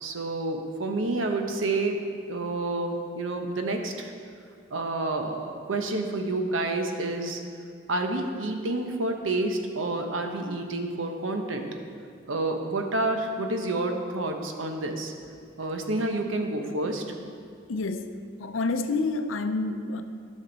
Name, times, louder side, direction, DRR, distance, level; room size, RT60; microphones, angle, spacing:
voice 1, 0.0-2.0 2.3-4.1 4.7-7.4 7.9-11.6 12.3-15.1 15.6-17.0, right 2 dB, 85° right, 4 dB, 0.9 m, -29 dB
voice 2, 17.7-20.0, left 3 dB, 85° left, 8 dB, 0.6 m, -29 dB
12.5 x 6.4 x 4.0 m, 2.3 s
head